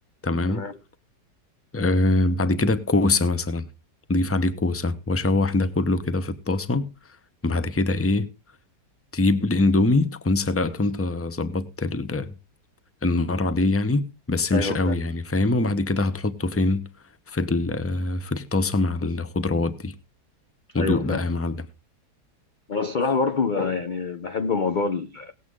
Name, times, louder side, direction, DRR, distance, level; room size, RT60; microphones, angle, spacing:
voice 1, 0.2-0.6 1.7-3.6 4.1-6.9 7.4-8.3 9.1-12.3 13.0-16.9 17.3-19.9 20.7-21.6, left 2 dB, 15° left, 0.6 m, -23 dB
voice 2, 14.5-14.9 20.7-21.2 22.7-25.3, left 4 dB, 55° left, 0.5 m, -26 dB
18.0 x 8.2 x 3.6 m
omnidirectional pair, 1.8 m